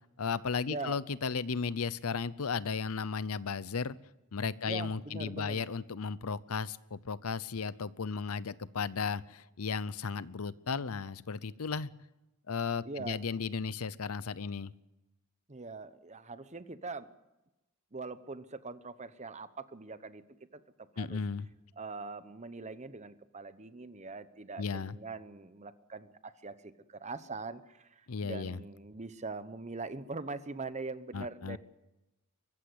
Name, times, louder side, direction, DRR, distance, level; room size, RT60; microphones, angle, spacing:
voice 1, 0.2-3.9 4.3-11.9 12.5-14.7 21.0-21.5 24.6-25.0 28.1-28.6 31.1-31.6, left 5 dB, 75° left, 18 dB, 0.7 m, -35 dB
voice 2, 4.7-5.7 12.8-13.2 15.5-17.1 17.9-20.2 20.5-20.6 20.9-21.2 21.8-31.6, right 3 dB, 30° right, 13 dB, 1.0 m, -42 dB
23.5 x 15.0 x 8.0 m, 1.0 s
head